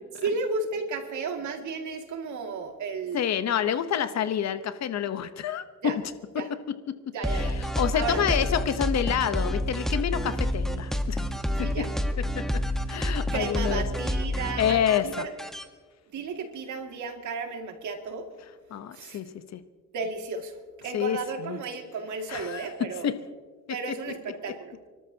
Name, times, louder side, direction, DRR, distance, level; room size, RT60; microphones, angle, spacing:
voice 1, 0.2-3.3 5.8-6.0 6.4-6.5 7.1-7.6 7.9-8.4 11.6-11.9 13.3-15.3 16.1-18.3 18.9-19.2 19.9-23.1 23.7-24.8, right 4 dB, 75° right, 3 dB, 2.3 m, -33 dB
voice 2, 3.1-5.9 6.3-6.4 6.9-7.0 7.3-11.2 11.6-11.7 12.3-12.4 12.9-13.8 14.6-15.1 18.7-19.3 19.5-19.6 20.9-21.6 22.3-22.6 23.0-23.1, left 9 dB, 60° left, 11 dB, 1.0 m, -28 dB
sound 1, 7.2-15.6, equal, ahead, 1.2 m, -29 dB
29.0 x 13.0 x 2.9 m, 1.5 s
cardioid pair, 90°, 30 cm